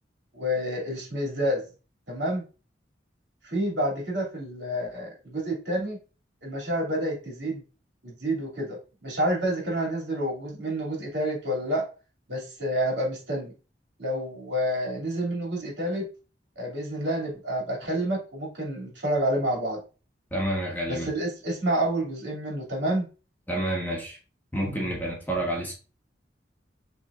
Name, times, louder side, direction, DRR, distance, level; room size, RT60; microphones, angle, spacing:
voice 1, 0.3-1.6 2.1-2.4 3.4-6.0 6.4-7.6 8.0-11.8 12.3-13.5 14.0-16.1 16.6-19.8 20.9-23.1, right 1 dB, 70° right, 2.5 m, -29 dB
voice 2, 20.3-21.1 23.5-24.2 24.5-25.7, right 1 dB, 10° left, 1.2 m, -29 dB
6.0 x 3.2 x 2.4 m
head